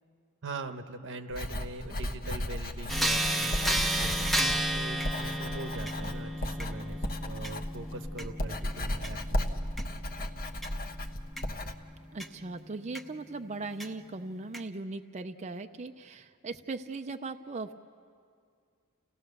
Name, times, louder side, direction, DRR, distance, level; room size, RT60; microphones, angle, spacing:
voice 1, 0.4-9.5, right 2 dB, 55° right, 8 dB, 1.0 m, -42 dB
Writing, 1.3-11.7, left 1 dB, 40° left, 1.1 m, -35 dB
sound 1, 2.9-12.3 12.9-13.0 13.8-13.9 14.5-14.6, right 1 dB, ahead, 0.8 m, -33 dB
voice 2, 12.1-17.7, right 3 dB, 30° right, 6 dB, 0.5 m, -39 dB
30.0 x 17.0 x 6.7 m, 2.2 s
head